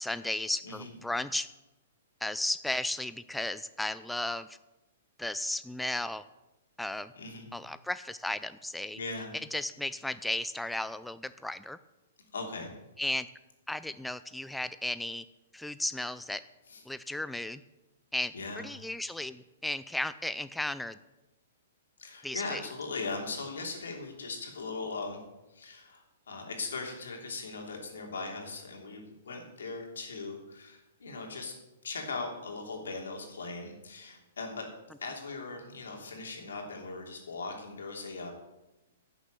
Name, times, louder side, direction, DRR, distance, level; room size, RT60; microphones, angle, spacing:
voice 1, 0.0-1.5 2.2-4.6 5.2-6.2 6.8-7.1 7.5-9.0 9.5-11.8 13.0-13.3 13.7-15.2 15.5-16.4 16.9-17.6 18.1-18.3 18.6-21.0 22.2-22.6, left 1 dB, 5° left, 14 dB, 0.4 m, -34 dB
voice 2, 7.2-7.5 8.9-9.3 12.3-12.8 16.7-16.8 18.3-18.7 22.0-25.2 25.5-31.5 31.8-34.7 35.0-38.3, left 3 dB, 80° left, 2 dB, 3.0 m, -39 dB
11.0 x 7.0 x 7.6 m, 1.0 s
hypercardioid pair, 130°, 0 cm